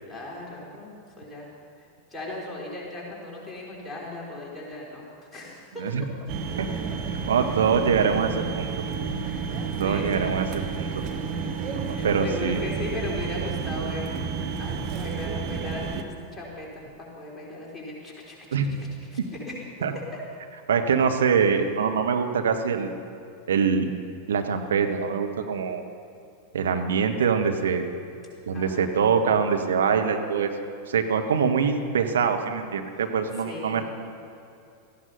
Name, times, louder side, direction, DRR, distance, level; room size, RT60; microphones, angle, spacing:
voice 1, 0.0-1.5 2.1-5.0 5.3-5.8 9.2-9.5 9.8-10.3 10.6-10.8 11.9-14.1 14.6-16.0 16.3-18.4 19.1-19.2 19.5-19.9 28.5-29.2 32.9-33.0 33.4-33.8, left 2 dB, 10° left, -5 dB, 4.0 m, -37 dB
sound 1, 6.3-16.0, right 6 dB, 40° right, 1.3 m, -31 dB
voice 2, 7.3-8.7 9.8-10.9 11.9-12.6 18.5-18.8 19.2-19.3 19.8-20.0 20.7-22.9 23.5-23.9 24.3-25.8 26.5-27.9 28.5-30.5 30.9-33.8, right 6 dB, 65° right, 5 dB, 1.3 m, -24 dB
17.5 x 14.5 x 5.5 m, 2.6 s
figure-of-eight pair, 90°, 0 cm